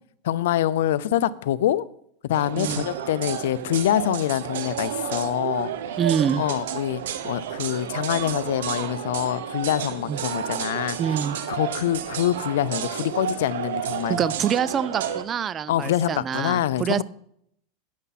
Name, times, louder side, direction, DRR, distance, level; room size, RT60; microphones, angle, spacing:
voice 1, 0.2-1.9 2.2-5.7 6.4-11.1 11.5-14.2 15.7-17.0, left 12 dB, 80° left, 18 dB, 0.5 m, -25 dB
sound 1, 2.3-15.2, right 8 dB, 85° right, 1.0 m, -31 dB
voice 2, 2.6-2.9 6.0-6.4 10.1-10.2 11.0-11.4 14.1-17.0, right 8 dB, 30° right, 19 dB, 0.5 m, -25 dB
11.0 x 8.4 x 4.2 m, 0.70 s
supercardioid pair, 125°, 0 cm